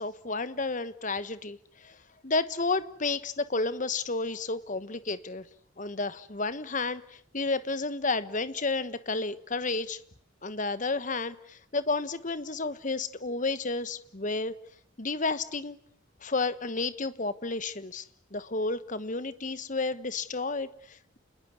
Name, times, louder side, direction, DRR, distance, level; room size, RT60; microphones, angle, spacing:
voice 1, 0.0-2.0 2.2-5.5 5.8-10.0 10.4-14.5 15.0-15.8 16.2-18.1 18.3-21.2, left 3 dB, 40° left, 14 dB, 1.3 m, -31 dB
29.0 x 21.0 x 9.6 m, 0.62 s
head